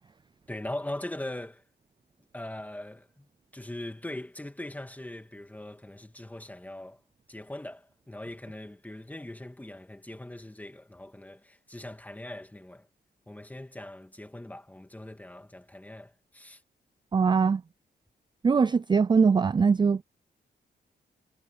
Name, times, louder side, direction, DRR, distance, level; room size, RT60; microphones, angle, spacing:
voice 1, 0.5-1.6 2.3-3.3 3.5-7.0 7.3-12.9 13.3-16.6, left 1 dB, 10° left, 2.6 m, -41 dB
voice 2, 17.1-17.6 18.4-20.0, right 5 dB, 25° right, 0.4 m, -22 dB
cardioid pair, 105°, 18 cm